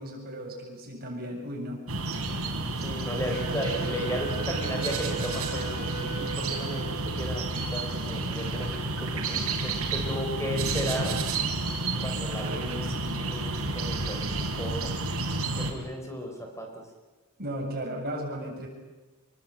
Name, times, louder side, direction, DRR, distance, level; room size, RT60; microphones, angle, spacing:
voice 1, 0.0-1.8 3.3-3.8 4.2-4.4 12.4-13.2 17.4-18.7, right 1 dB, 45° right, 0 dB, 7.8 m, -36 dB
sound 1, 1.9-15.7, right 2 dB, 80° right, 4.9 m, -30 dB
voice 2, 2.8-11.2 12.0-12.6 13.2-14.9 15.5-16.9, equal, 15° left, 3 dB, 4.2 m, -35 dB
Wind instrument woodwind instrument, 3.3-7.6, right 5 dB, 45° left, 4.2 m, -39 dB
26.5 x 23.0 x 8.8 m, 1.2 s
head